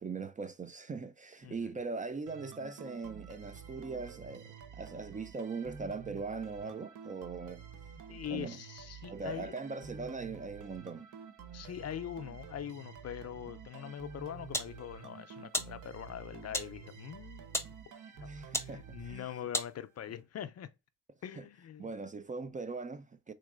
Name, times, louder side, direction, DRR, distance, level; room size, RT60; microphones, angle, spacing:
voice 1, 0.0-7.6 8.3-8.6 9.1-11.1 18.3-19.3 21.4-21.5 21.8-23.3, right 4 dB, 25° right, 0.4 m, -40 dB
voice 2, 1.4-1.8 8.1-9.5 11.5-17.5 17.9-20.7 21.2-21.9, left 10 dB, 50° left, 0.5 m, -43 dB
sound 1, 2.3-19.8, right 6 dB, 65° right, 0.8 m, -49 dB
sound 2, 13.9-20.2, left 2 dB, 10° left, 0.7 m, -41 dB
3.9 x 2.6 x 2.4 m
supercardioid pair, 60°, 33 cm